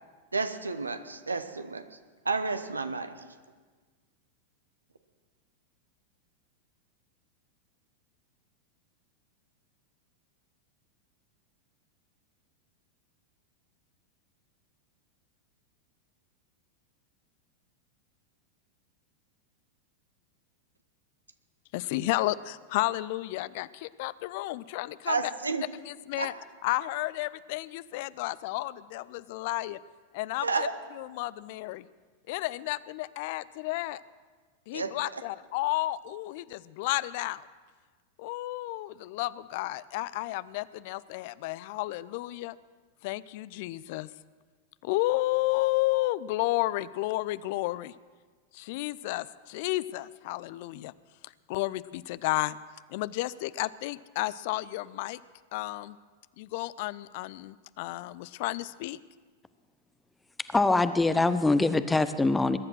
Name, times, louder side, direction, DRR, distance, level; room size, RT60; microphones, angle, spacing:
voice 1, 0.3-1.8 2.2-3.2 25.1-25.6 26.2-26.3 30.4-30.7 34.7-35.2, right 4 dB, 80° right, 9 dB, 1.1 m, -31 dB
voice 2, 21.7-25.2 25.8-26.3 26.6-29.8 30.1-30.7 30.9-31.9 32.3-34.0 34.7-37.4 38.2-42.6 43.0-44.1 44.8-47.9 48.5-50.9 51.2-52.6 52.9-55.2 55.5-56.0 56.4-59.0, left 18 dB, 50° left, 18 dB, 0.4 m, -32 dB
voice 3, 60.5-62.6, left 2 dB, 10° left, 12 dB, 0.8 m, -23 dB
21.0 x 11.0 x 6.2 m, 1.4 s
figure-of-eight pair, 90°, 0 cm